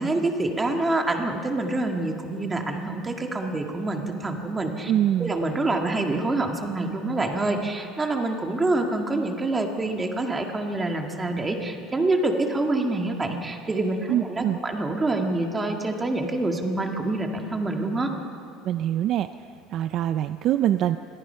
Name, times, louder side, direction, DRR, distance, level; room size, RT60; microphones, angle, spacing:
voice 1, 0.0-4.9 5.2-18.1, right 2 dB, 15° right, 3 dB, 1.9 m, -26 dB
voice 2, 4.9-5.3 14.1-14.6 18.6-19.3 19.7-21.0, right 11 dB, 40° right, 11 dB, 0.5 m, -24 dB
28.0 x 22.5 x 5.6 m, 2.5 s
cardioid pair, 170°, 0 cm